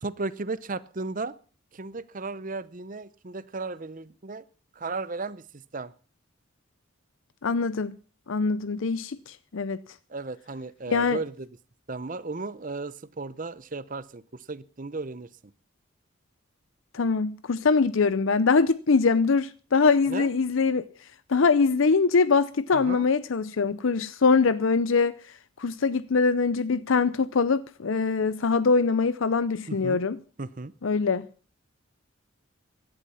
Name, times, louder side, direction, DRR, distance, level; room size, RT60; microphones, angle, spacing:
voice 1, 0.0-1.3 1.7-4.4 4.8-5.9 10.1-11.5 11.9-15.3 20.1-20.3 22.7-23.1 29.7-30.0 30.4-30.7, right 3 dB, 40° right, 0.7 m, -35 dB
voice 2, 7.4-8.0 8.3-9.8 10.9-11.2 16.9-20.9 21.3-25.1 25.6-30.2 30.8-31.3, left 4 dB, 75° left, 0.6 m, -23 dB
16.5 x 12.0 x 5.6 m
head